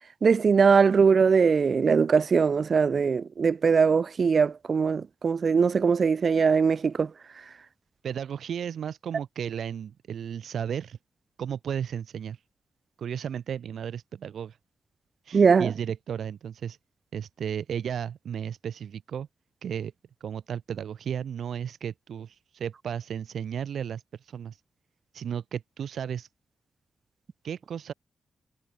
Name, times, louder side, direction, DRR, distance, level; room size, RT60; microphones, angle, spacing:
voice 1, 0.2-7.1 15.3-15.7, right 5 dB, 50° right, 0.9 m, -21 dB
voice 2, 8.0-11.0 11.4-12.4 13.0-14.6 15.2-16.8 17.1-19.3 19.6-19.9 20.2-24.6 25.1-26.3 27.4-27.9, right 8 dB, 75° right, 3.8 m, -34 dB
wide cardioid pair, 110°, 0 cm